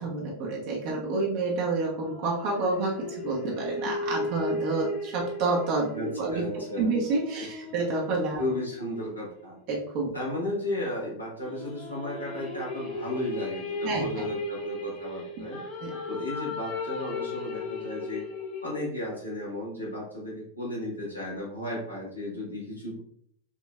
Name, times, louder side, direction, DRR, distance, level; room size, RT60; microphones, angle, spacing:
voice 1, 0.0-6.4 6.8-8.4 9.7-10.1 13.8-14.3 15.8-15.9, right 3 dB, 45° right, -3 dB, 1.1 m, -29 dB
sound 1, 1.9-9.6 11.4-18.8, left 2 dB, 35° left, 0.9 m, -36 dB
voice 2, 5.9-6.9 7.3-7.4 8.4-9.6 10.1-15.6 16.1-18.2 18.6-23.0, left 1 dB, 85° left, -6 dB, 1.7 m, -34 dB
5.4 x 3.1 x 2.5 m, 0.67 s
figure-of-eight pair, 90°, 0 cm